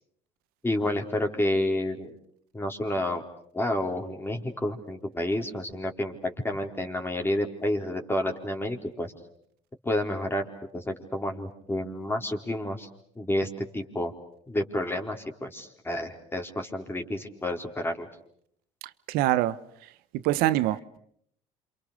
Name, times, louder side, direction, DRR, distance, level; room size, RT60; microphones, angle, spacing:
voice 1, 0.6-2.1 2.5-3.2 3.5-9.1 9.8-10.4 10.7-12.9 13.2-14.1 14.5-18.1, left 1 dB, 15° left, 4.1 m, -30 dB
voice 2, 19.1-19.6 20.1-21.0, right 15 dB, 70° right, 1.2 m, -24 dB
28.5 x 27.0 x 6.6 m
supercardioid pair, 75°, 16 cm